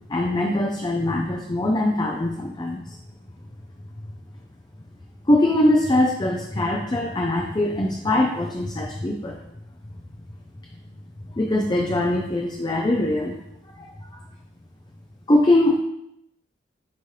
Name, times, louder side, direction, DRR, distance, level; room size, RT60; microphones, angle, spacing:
voice 1, 0.1-3.0 5.3-9.4 11.3-13.4 13.8-14.2 15.3-15.8, left 1 dB, 25° left, 1 dB, 0.5 m, -22 dB
8.2 x 4.2 x 3.3 m, 0.80 s
head